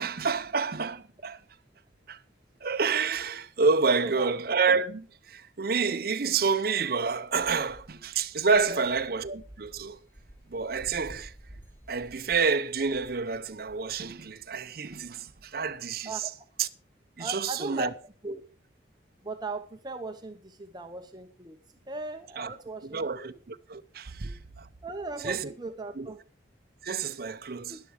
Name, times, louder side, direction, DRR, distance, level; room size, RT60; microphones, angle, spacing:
voice 1, 0.0-1.4 2.1-2.2 2.6-10.0 10.5-11.3 11.9-16.1 16.6-16.7 17.2-17.9 22.4-22.5 22.9-24.7 25.2-25.5 26.0-26.1 26.8-27.8, right 5 dB, 50° right, 0.6 m, -28 dB
sound 1, 7.3-14.5, right 1 dB, 10° left, 2.9 m, -52 dB
voice 2, 17.2-17.9 18.2-18.4 19.2-21.6 21.9-23.0 24.0-24.2 24.8-26.2 27.7-27.8, right 2 dB, 20° right, 0.8 m, -38 dB
12.0 x 10.5 x 4.9 m
head